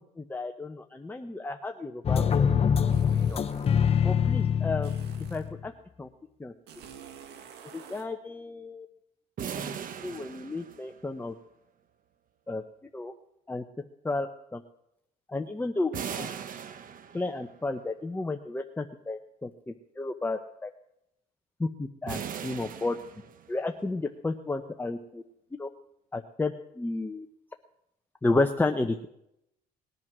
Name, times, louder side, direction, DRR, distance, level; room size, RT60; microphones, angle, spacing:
voice 1, 0.2-3.4 4.0-4.9 5.3-5.7 6.0-6.1 6.4-6.5 7.7-8.9 9.5-9.8 10.0-11.3 12.5-12.6 12.9-13.1 13.5-13.6 14.0-14.6 15.3-16.3 17.1-20.7 21.6-23.0 23.5-25.2 25.6-25.7 26.1-27.3 28.2-29.1, left 2 dB, 10° left, 5 dB, 0.9 m, -32 dB
sound 1, 2.0-5.7, left 7 dB, 35° left, 0.9 m, -25 dB
sound 2, 2.9-3.8 4.8-5.5 6.7-8.1, right 8 dB, 80° right, 1.9 m, -49 dB
sound 3, 9.4-11.3 15.9-17.6 22.1-23.7, right 8 dB, 55° right, 1.1 m, -39 dB
20.0 x 10.5 x 6.2 m, 0.80 s
cardioid pair, 110°, 17 cm